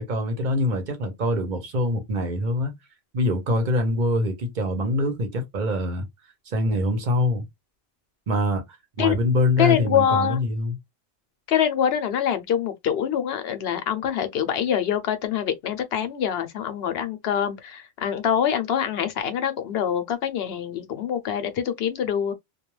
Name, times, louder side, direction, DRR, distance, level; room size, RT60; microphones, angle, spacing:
voice 1, 0.0-2.7 3.1-6.1 6.5-7.4 8.3-8.6 9.0-10.8, left 1 dB, 50° right, 0.9 m, -24 dB
voice 2, 9.6-10.4 11.5-22.3, left 9 dB, 75° left, 0.8 m, -25 dB
2.3 x 2.2 x 3.1 m
omnidirectional pair, 1.0 m